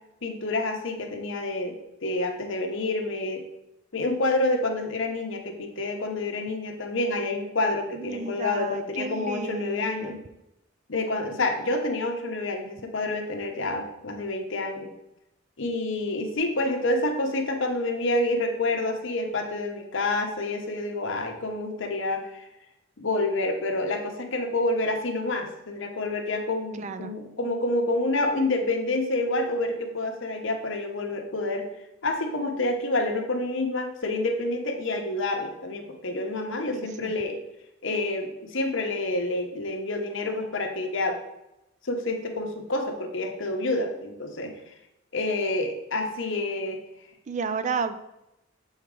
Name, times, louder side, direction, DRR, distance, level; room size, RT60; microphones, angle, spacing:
voice 1, 0.2-3.4 3.9-10.2 10.9-14.9 15.6-22.5 23.0-31.7 32.0-37.4 37.8-41.2 41.8-44.5 45.1-46.8, left 2 dB, 65° left, 4 dB, 0.9 m, -28 dB
voice 2, 7.9-10.2 26.8-27.1 36.7-37.1 47.3-48.0, right 5 dB, 35° right, 11 dB, 0.4 m, -32 dB
7.1 x 4.5 x 3.7 m, 0.89 s
head